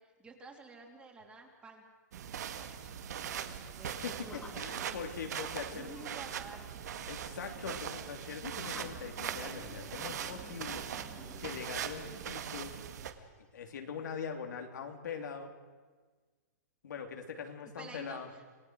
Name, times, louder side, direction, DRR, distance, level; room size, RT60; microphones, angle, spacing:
voice 1, 0.0-1.8 2.5-5.0 5.6-6.8 17.8-18.4, right 3 dB, 10° right, 2 dB, 3.0 m, -52 dB
sound 1, 2.1-13.1, right 9 dB, 65° right, 1.9 m, -41 dB
voice 2, 3.8-6.0 7.1-10.8 11.4-12.7 13.5-15.5 16.8-18.3, left 6 dB, 80° left, 4 dB, 3.3 m, -42 dB
sound 2, 4.2-13.8, left 3 dB, 10° left, 2.2 m, -56 dB
27.0 x 19.0 x 6.4 m, 1.4 s
hypercardioid pair, 150°, 10 cm